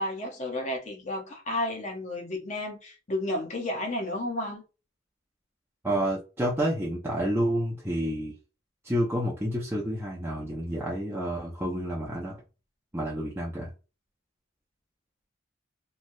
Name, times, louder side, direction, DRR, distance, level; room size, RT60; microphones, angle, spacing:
voice 1, 0.0-4.6, left 1 dB, 35° left, 0.8 m, -32 dB
voice 2, 5.8-8.3 8.8-12.4 12.9-13.7, equal, 10° right, 0.5 m, -29 dB
3.1 x 2.3 x 2.6 m
head